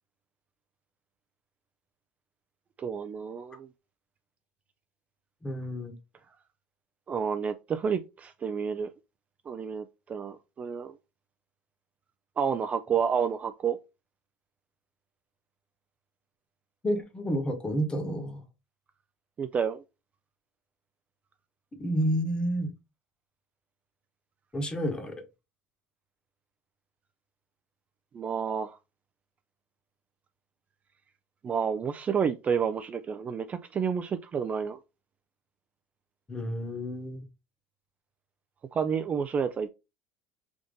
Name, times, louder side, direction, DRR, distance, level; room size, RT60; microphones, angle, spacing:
voice 1, 2.8-3.7 7.1-8.9 9.5-11.0 12.4-13.8 19.4-19.8 28.1-28.8 31.4-34.8 38.7-39.7, right 6 dB, 30° right, 0.4 m, -30 dB
voice 2, 5.4-6.0 16.8-18.4 21.7-22.7 24.5-25.2 36.3-37.2, equal, 20° left, 1.0 m, -30 dB
3.5 x 2.6 x 3.7 m
supercardioid pair, 110°, 5 cm